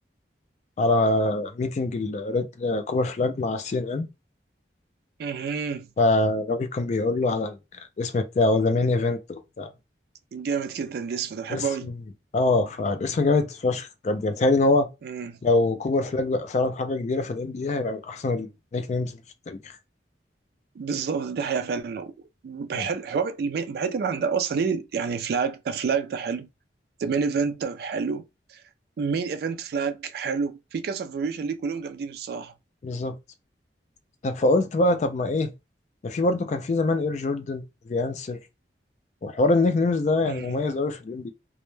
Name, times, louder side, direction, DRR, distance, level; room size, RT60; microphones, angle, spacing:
voice 1, 0.8-4.1 6.0-7.6 8.0-9.7 11.5-11.9 12.3-14.9 15.4-18.5 18.7-19.2 19.5-19.6 22.7-22.9 32.8-33.2 34.2-35.5 36.0-38.4 39.2-41.3, left 2 dB, 40° left, 0.3 m, -24 dB
voice 2, 5.2-5.9 10.3-11.9 15.0-15.4 20.8-22.1 22.4-26.5 27.0-28.6 29.0-32.5 40.3-40.6, right 5 dB, 60° right, 0.3 m, -28 dB
2.1 x 2.1 x 3.0 m
head